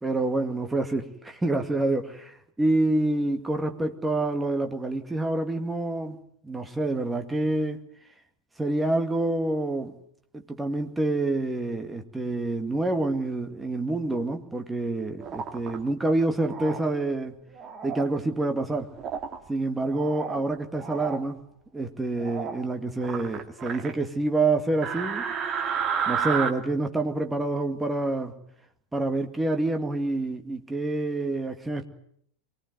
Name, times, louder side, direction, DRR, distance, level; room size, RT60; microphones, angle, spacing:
voice 1, 0.0-6.2 6.4-7.8 8.6-9.9 10.3-17.4 17.8-18.9 19.5-21.5 21.7-25.2 26.1-28.3 28.9-31.8, right 2 dB, 10° right, 2.2 m, -27 dB
sound 1, 15.2-15.8 16.5-16.8 17.5-18.1 19.0-19.4 19.8-20.4 20.8-21.2 22.2-22.6 23.0-23.9 24.8-26.5, right 7 dB, 30° right, 2.2 m, -31 dB
24.0 x 19.0 x 9.5 m
figure-of-eight pair, 90°, 0 cm